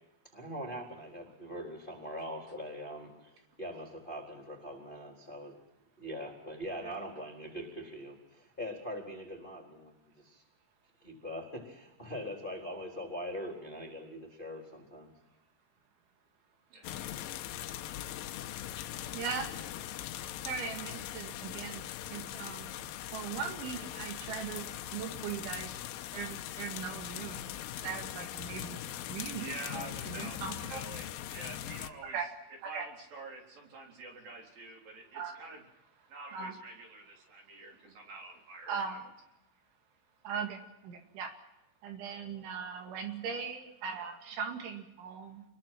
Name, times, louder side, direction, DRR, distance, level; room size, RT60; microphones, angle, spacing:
voice 1, 0.3-5.5 6.0-10.4 11.0-15.1, equal, 10° left, 0 dB, 3.4 m, -42 dB
voice 2, 16.7-17.2 29.4-30.4 30.7-32.2 32.7-35.6 36.1-38.8, right 3 dB, 50° right, 1 dB, 5.2 m, -47 dB
sound 1, 16.8-31.9, left 12 dB, 80° left, 3.4 m, -41 dB
voice 3, 19.1-19.5 20.4-22.7 23.1-25.7 26.1-27.5 27.8-28.8 29.1-30.8 32.1-32.3 32.6-32.9 35.1-35.4 36.3-36.5 38.7-39.0 40.2-41.3 41.8-45.4, right 6 dB, 70° right, 3 dB, 4.5 m, -39 dB
28.0 x 22.0 x 6.0 m, 0.91 s
omnidirectional pair, 5.7 m